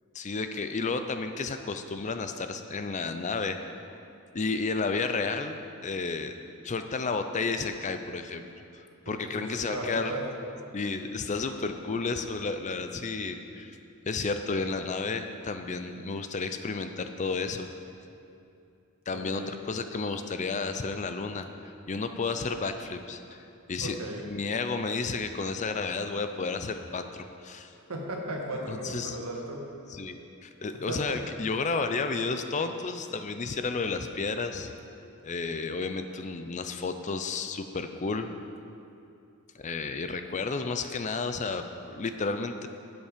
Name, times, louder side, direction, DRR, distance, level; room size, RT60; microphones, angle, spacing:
voice 1, 0.1-3.6 4.3-6.3 6.6-8.4 9.1-10.1 10.7-13.8 14.1-17.7 19.1-24.0 24.2-27.7 28.7-29.2 29.9-34.7 35.2-38.3 39.5-42.7, left 4 dB, 35° left, 8 dB, 0.5 m, -32 dB
voice 2, 9.1-10.2 19.1-19.6 23.8-24.2 27.9-29.6 30.9-31.2, right 1 dB, 70° right, 0 dB, 1.7 m, -36 dB
12.0 x 8.1 x 5.1 m, 2.7 s
head